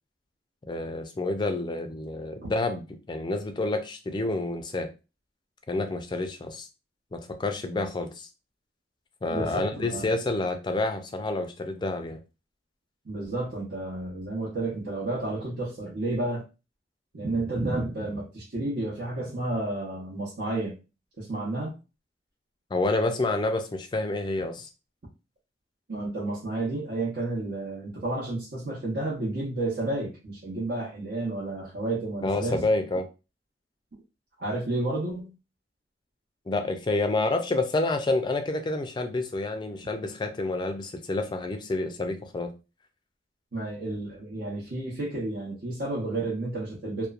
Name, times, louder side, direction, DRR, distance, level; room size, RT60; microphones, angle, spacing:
voice 1, 0.7-4.9 5.7-6.7 7.1-8.3 9.2-12.2 22.7-24.7 32.2-33.1 36.5-42.5, left 2 dB, 25° left, 6 dB, 0.3 m, -28 dB
voice 2, 9.3-10.0 13.0-16.4 17.1-20.8 21.2-21.7 25.9-32.6 34.4-35.3 43.5-47.1, right 2 dB, 65° right, -6 dB, 0.8 m, -31 dB
2.9 x 2.1 x 2.4 m, 0.29 s
head